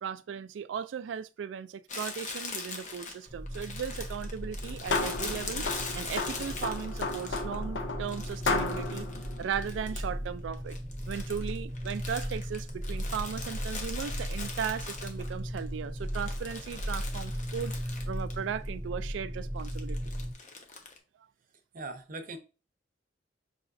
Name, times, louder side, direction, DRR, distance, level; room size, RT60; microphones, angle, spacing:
voice 1, 0.0-5.7 5.9-9.1 9.4-10.8 11.1-20.0, right 7 dB, 80° right, 0.3 m, -37 dB
Crumpling crinkling, 1.9-7.6 8.1-10.3 10.5-15.6 16.0-18.4 18.6-18.7 19.6-21.0, left 4 dB, 45° left, 0.8 m, -42 dB
sound 1, 3.3-20.3, equal, 5° right, 0.5 m, -37 dB
sound 2, 4.4-10.3, left 3 dB, 85° left, 0.6 m, -34 dB
voice 2, 21.7-22.4, right 2 dB, 50° right, 0.7 m, -40 dB
5.6 x 3.0 x 2.6 m
head